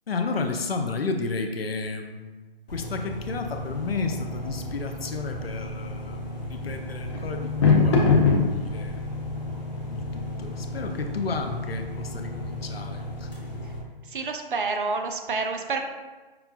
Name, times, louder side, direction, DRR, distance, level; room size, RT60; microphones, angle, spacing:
voice 1, 0.1-9.0 9.9-13.3, left 4 dB, 80° left, 5 dB, 0.6 m, -32 dB
sound 1, 2.7-13.8, equal, 45° left, 1.1 m, -36 dB
sound 2, 3.1-13.9, left 4 dB, 30° left, 0.5 m, -28 dB
voice 2, 14.1-15.8, right 4 dB, 60° right, 4 dB, 0.5 m, -28 dB
5.7 x 2.2 x 2.4 m, 1.3 s
figure-of-eight pair, 140°, 30 cm